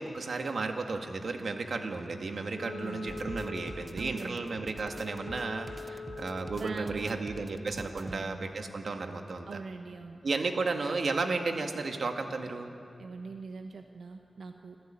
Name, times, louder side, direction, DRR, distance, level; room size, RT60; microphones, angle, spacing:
voice 1, 0.0-9.6 10.2-12.7, right 3 dB, 60° right, 5 dB, 1.7 m, -33 dB
Wind instrument woodwind instrument, 2.6-6.7, left 4 dB, 55° left, 0.6 m, -44 dB
voice 2, 2.6-3.1 4.0-4.5 6.5-7.3 7.9-8.4 9.5-10.2 13.0-14.8, right 4 dB, 85° right, 5 dB, 1.0 m, -43 dB
sound 1, 3.1-8.2, right 3 dB, 35° right, 0.7 m, -45 dB
27.0 x 14.5 x 8.8 m, 2.5 s
wide cardioid pair, 150°, 0 cm